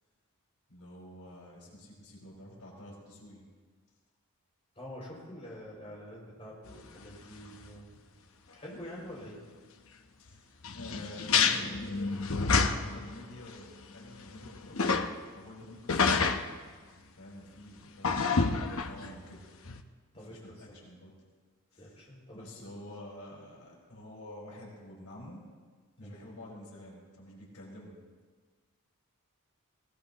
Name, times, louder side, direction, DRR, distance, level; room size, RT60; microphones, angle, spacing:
voice 1, 0.7-3.5 10.2-15.0 15.3-16.3 17.2-19.5 20.1-21.1 21.7-22.0 22.3-25.5 26.0-28.0, left 1 dB, 90° left, -3 dB, 5.2 m, -48 dB
voice 2, 4.7-7.9 8.5-9.4 20.1-20.9 21.8-22.7 26.0-26.3, equal, 25° left, -4 dB, 5.9 m, -46 dB
sound 1, 6.7-6.8 7.3-7.4 7.7-7.8 10.6-13.1 13.5-13.6 14.1-15.1 15.9-16.5 18.0-19.2 19.7-19.8, left 5 dB, 65° left, 0.9 m, -28 dB
21.5 x 19.5 x 3.0 m, 1.5 s
head